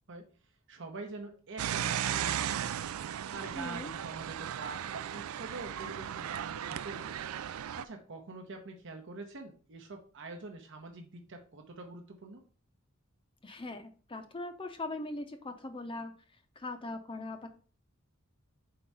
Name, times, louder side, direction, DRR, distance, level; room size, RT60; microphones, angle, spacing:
voice 1, 0.7-2.6 3.3-7.2 7.6-12.4, right 3 dB, 60° right, 3 dB, 0.8 m, -45 dB
sound 1, 1.6-7.8, right 10 dB, 85° right, 0.4 m, -36 dB
voice 2, 3.6-3.9 13.4-16.1 16.6-17.5, left 2 dB, 25° left, 6 dB, 0.5 m, -40 dB
4.6 x 3.8 x 5.4 m, 0.39 s
head